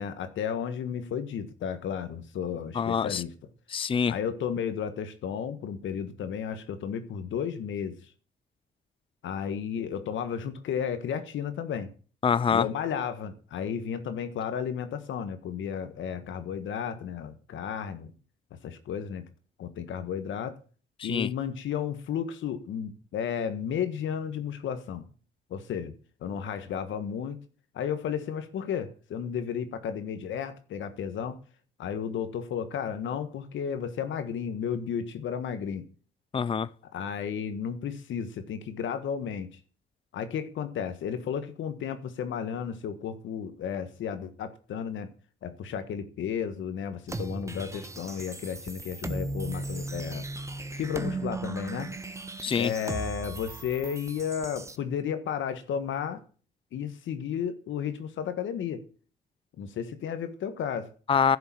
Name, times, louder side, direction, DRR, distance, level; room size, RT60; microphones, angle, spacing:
voice 1, 0.0-3.3 4.1-8.0 9.2-11.9 12.5-18.1 18.6-19.2 19.6-20.6 21.0-25.0 25.5-25.9 26.2-27.4 27.7-31.4 31.8-35.8 36.9-39.6 40.1-45.1 45.4-50.2 50.7-51.9 52.5-56.2 56.7-58.8 59.6-60.9, left 8 dB, 75° left, 1.5 m, -33 dB
voice 2, 2.7-3.2 3.7-4.1 12.2-12.7 21.0-21.3 36.3-36.7 52.4-52.7 61.1-61.4, left 6 dB, 25° left, 0.5 m, -25 dB
sound 1, 47.1-54.8, right 2 dB, 15° right, 1.3 m, -37 dB
11.0 x 6.8 x 8.6 m
cardioid pair, 90°, 20 cm